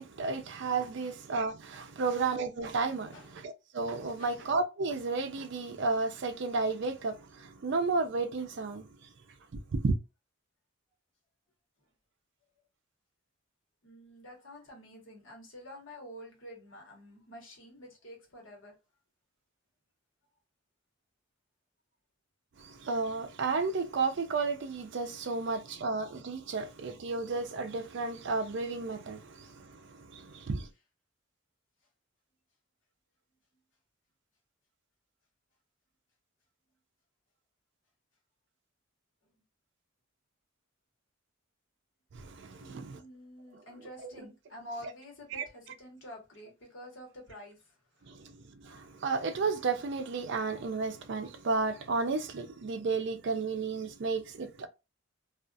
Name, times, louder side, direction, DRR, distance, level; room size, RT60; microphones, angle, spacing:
voice 1, 0.0-8.9 9.5-10.0 22.6-30.7 42.1-43.0 45.3-45.4 48.1-54.7, right 4 dB, 55° right, 0.4 m, -33 dB
voice 2, 13.8-18.8 42.5-47.8 48.0-48.2, equal, 65° left, 1.1 m, -49 dB
2.3 x 2.3 x 2.5 m
head